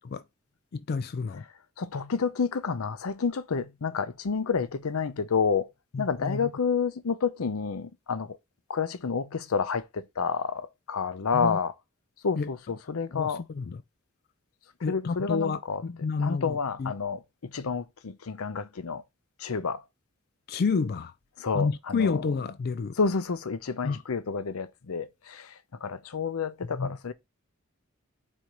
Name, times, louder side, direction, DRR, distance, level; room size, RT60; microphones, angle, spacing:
voice 1, 0.7-1.4 5.9-6.5 11.3-11.6 12.4-12.5 13.1-13.8 14.8-16.9 20.5-21.1 21.5-22.9 23.8-24.0 26.6-27.0, left 4 dB, 50° left, 0.4 m, -30 dB
voice 2, 1.8-5.7 6.0-8.3 8.7-11.7 12.2-13.4 14.9-15.8 16.2-17.2 17.5-19.0 19.4-19.8 21.4-22.1 23.0-25.5 25.8-27.1, left 5 dB, 85° left, 0.6 m, -29 dB
4.7 x 4.3 x 5.1 m
head